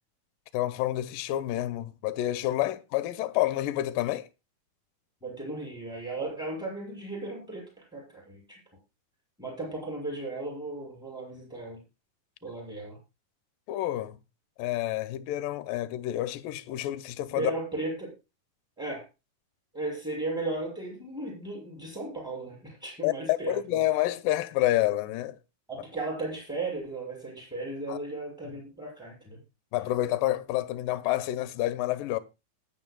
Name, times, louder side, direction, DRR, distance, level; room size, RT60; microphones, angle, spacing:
voice 1, 0.5-4.3 13.7-14.2 14.6-17.5 23.0-25.4 27.9-28.0 29.7-32.2, left 15 dB, 80° left, 2.3 m, -28 dB
voice 2, 5.2-8.6 9.4-11.8 12.4-13.0 17.3-18.1 18.8-19.0 19.7-23.6 25.7-29.4, right 2 dB, ahead, 6.7 m, -36 dB
20.0 x 9.5 x 2.3 m
omnidirectional pair, 4.3 m